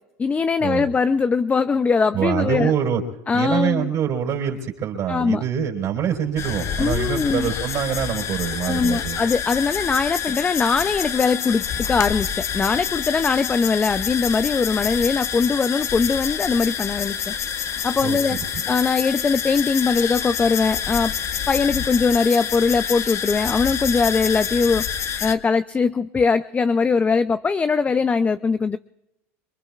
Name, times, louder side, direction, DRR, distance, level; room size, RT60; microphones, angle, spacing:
voice 1, 0.2-2.7 3.3-3.9 5.1-5.4 6.8-7.5 8.7-17.3 17.8-18.4 18.7-21.1 21.5-24.8 25.2-28.8, left 5 dB, 20° left, 12 dB, 0.5 m, -21 dB
voice 2, 2.1-3.0 3.3-9.2 18.0-18.4, right 8 dB, 45° right, 1 dB, 4.3 m, -25 dB
sound 1, 6.4-25.4, left 8 dB, 40° left, 1.0 m, -27 dB
27.5 x 21.0 x 2.4 m, 0.90 s
supercardioid pair, 100°, 7 cm